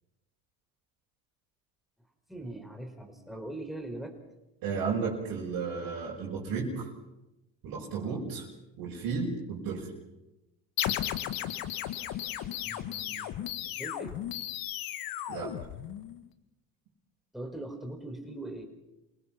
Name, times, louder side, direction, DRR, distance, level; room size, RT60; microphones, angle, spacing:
voice 1, 2.3-4.2 8.0-8.2 12.6-13.4 13.8-14.1 17.3-18.6, right 1 dB, ahead, 3 dB, 4.7 m, -41 dB
voice 2, 4.6-6.9 7.6-8.4 8.8-9.9 15.3-15.5, right 5 dB, 65° right, -4 dB, 5.8 m, -33 dB
sound 1, 10.8-16.2, left 12 dB, 60° left, 1.7 m, -35 dB
28.5 x 18.5 x 5.9 m, 0.97 s
supercardioid pair, 105°, 39 cm